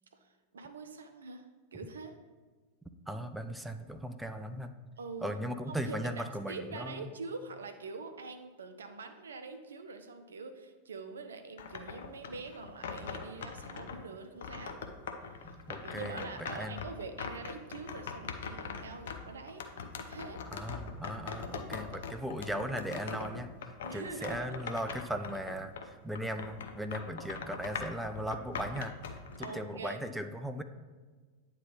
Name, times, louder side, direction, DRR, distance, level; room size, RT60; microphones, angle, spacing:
voice 1, 0.1-1.5 1.7-2.2 5.0-5.3 5.7-14.8 15.4-19.7 20.0-20.4 23.8-24.6 29.4-30.0, right 4 dB, 70° right, 7 dB, 0.6 m, -44 dB
voice 2, 3.1-4.7 5.2-7.1 15.7-16.8 20.5-23.5 23.9-30.6, equal, 5° right, 7 dB, 0.4 m, -38 dB
sound 1, 11.6-14.0 14.4-25.9 26.2-29.5, left 6 dB, 60° left, 0.5 m, -42 dB
9.2 x 3.2 x 3.8 m, 1.4 s
figure-of-eight pair, 90°, 0 cm